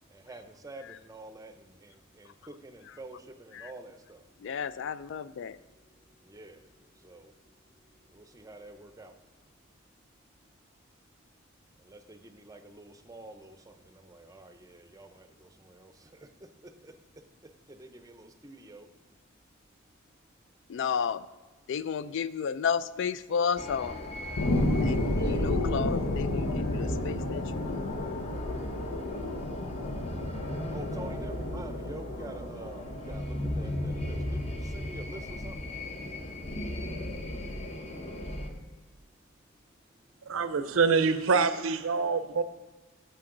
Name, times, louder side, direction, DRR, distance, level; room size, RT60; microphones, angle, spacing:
voice 1, 0.1-4.2 6.3-6.6 7.0-7.3 8.1-9.1 11.9-16.3 16.8-16.9 17.7-18.9 25.1-25.5 30.7-35.6, right 2 dB, 15° right, 8 dB, 0.6 m, -47 dB
voice 2, 4.4-5.6 20.7-21.2 21.7-24.0 24.8-28.0, left 6 dB, 60° left, 16 dB, 0.3 m, -32 dB
sound 1, 23.6-38.5, left 1 dB, 30° left, 0.8 m, -37 dB
sound 2, 24.4-35.4 35.8-35.9, left 1 dB, 85° left, 0.8 m, -32 dB
voice 3, 40.2-42.4, right 5 dB, 75° right, 12 dB, 0.6 m, -25 dB
10.5 x 6.9 x 3.8 m, 1.3 s
head